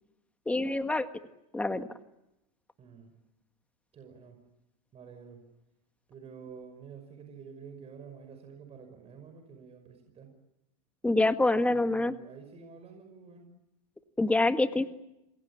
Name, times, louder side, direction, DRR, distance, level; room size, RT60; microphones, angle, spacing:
voice 1, 0.5-1.1 1.5-1.9 11.0-12.1 14.2-14.9, left 2 dB, 5° left, 9 dB, 1.6 m, -26 dB
voice 2, 2.8-3.1 3.9-4.4 4.9-5.4 6.1-10.3 11.7-13.4, right 6 dB, 30° right, 5 dB, 5.7 m, -49 dB
28.5 x 22.5 x 8.6 m, 0.91 s
supercardioid pair, 120°, 20 cm